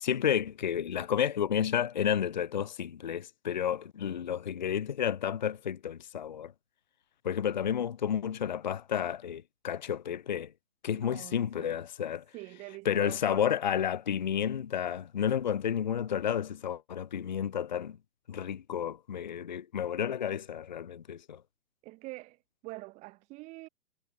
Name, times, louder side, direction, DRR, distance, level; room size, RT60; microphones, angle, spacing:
voice 1, 0.0-6.5 7.2-10.5 10.8-12.2 12.8-18.0 18.3-21.4, left 9 dB, 30° left, 0.7 m, -31 dB
voice 2, 10.9-11.7 12.3-13.4 21.8-23.7, right 22 dB, 15° right, 4.1 m, -45 dB
hypercardioid pair, 175°, 43 cm